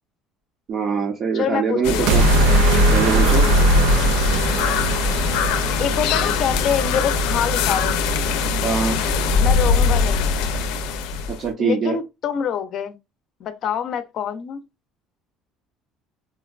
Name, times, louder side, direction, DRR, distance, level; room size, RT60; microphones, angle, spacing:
voice 1, 0.7-2.2 2.9-3.5 8.6-9.0 11.3-12.0, right 6 dB, 40° right, 0.6 m, -23 dB
voice 2, 1.3-2.1 5.8-8.0 9.4-10.4 11.6-13.0 13.4-14.6, left 8 dB, 45° left, 0.5 m, -25 dB
sound 1, 1.8-11.5, left 4 dB, 90° left, 0.5 m, -22 dB
sound 2, 2.1-6.3, right 1 dB, 85° right, 0.4 m, -19 dB
4.4 x 2.2 x 2.4 m
cardioid pair, 150°, 0 cm